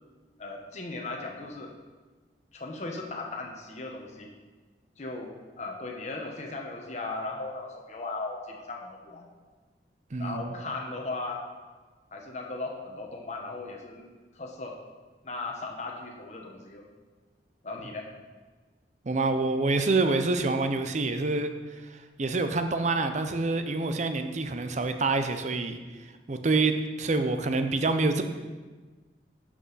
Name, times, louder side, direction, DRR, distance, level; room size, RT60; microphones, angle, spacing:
voice 1, 0.4-1.7 2.5-4.3 5.0-9.2 10.2-11.5 12.1-14.1 14.3-14.8 15.2-16.8 17.6-18.1, left 3 dB, 40° left, 1 dB, 1.0 m, -37 dB
voice 2, 10.1-10.4 19.1-21.5 22.2-25.8 26.3-28.2, right 3 dB, 40° right, 8 dB, 0.6 m, -26 dB
11.0 x 6.1 x 4.1 m, 1.3 s
head